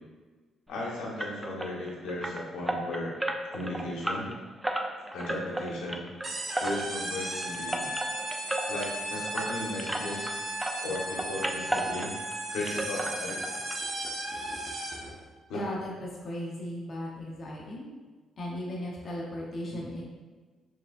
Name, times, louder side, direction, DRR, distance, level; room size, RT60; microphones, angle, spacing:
voice 1, 0.7-3.1 3.5-4.3 5.1-6.0 6.6-7.9 8.7-10.3 10.8-12.1 12.5-13.6 15.5-15.6 19.7-19.8, left 1 dB, 90° left, -4 dB, 1.1 m, -36 dB
sound 1, 1.2-10.3 10.6-12.4 12.6-13.8 14.0-14.1 14.6-14.7 15.0-15.1, right 1 dB, 10° right, 0.4 m, -34 dB
sound 2, 6.2-15.1, right 1 dB, 40° right, 1.0 m, -35 dB
voice 2, 15.5-17.9 18.4-20.0, left 1 dB, 45° left, -4 dB, 0.8 m, -36 dB
4.7 x 3.5 x 2.5 m, 1.3 s
cardioid pair, 90°, 0 cm